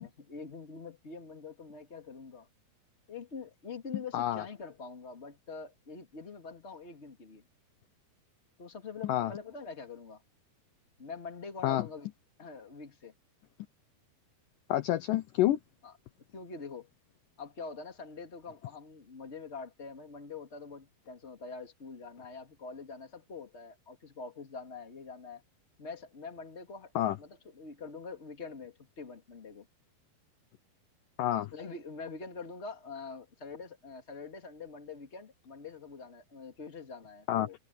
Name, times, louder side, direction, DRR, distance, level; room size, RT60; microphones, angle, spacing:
voice 1, 0.0-2.5 3.1-7.4 8.6-10.2 11.0-12.1 12.4-13.1 15.8-15.9 16.3-16.9 17.4-25.4 25.8-26.9 27.2-29.7 31.5-37.6, left 4 dB, 20° left, 2.4 m, -45 dB
voice 2, 4.1-4.4 9.0-9.3 11.6-11.9 14.7-15.6 27.0-27.2 31.2-31.5 37.3-37.5, left 14 dB, 75° left, 2.2 m, -28 dB
omnidirectional pair, 4.3 m